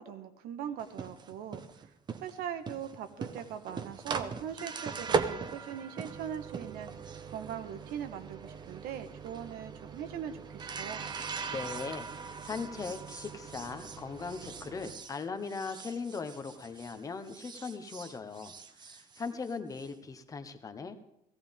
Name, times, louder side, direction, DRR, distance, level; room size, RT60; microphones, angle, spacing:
voice 1, 0.0-1.6 2.2-6.9 7.3-11.1, right 9 dB, 80° right, 8 dB, 1.4 m, -40 dB
sound 1, 0.8-17.0 17.3-19.9, right 5 dB, 30° right, 0.8 m, -40 dB
voice 2, 11.5-21.0, left 4 dB, 20° left, 9 dB, 1.0 m, -39 dB
17.0 x 16.0 x 3.6 m, 0.81 s
cardioid pair, 155°, 15 cm